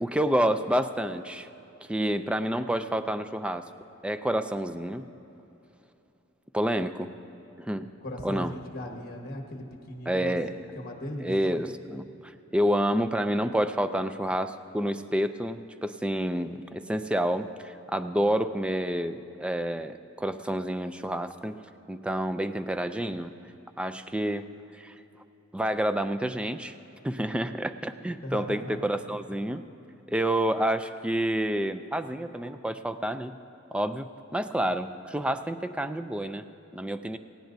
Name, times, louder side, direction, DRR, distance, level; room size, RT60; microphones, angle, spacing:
voice 1, 0.0-1.5 1.9-3.6 4.0-5.1 6.5-7.1 7.6-7.9 8.2-8.5 10.1-10.5 11.2-21.6 21.9-23.3 23.8-24.5 24.8-24.9 25.5-26.7 27.0-29.6 30.1-33.4 33.7-36.5 36.7-37.2, right 1 dB, 5° right, 10 dB, 0.3 m, -29 dB
voice 2, 8.0-11.3 28.2-28.9, equal, 50° left, 2 dB, 1.4 m, -38 dB
18.5 x 16.5 x 2.6 m, 2.9 s
head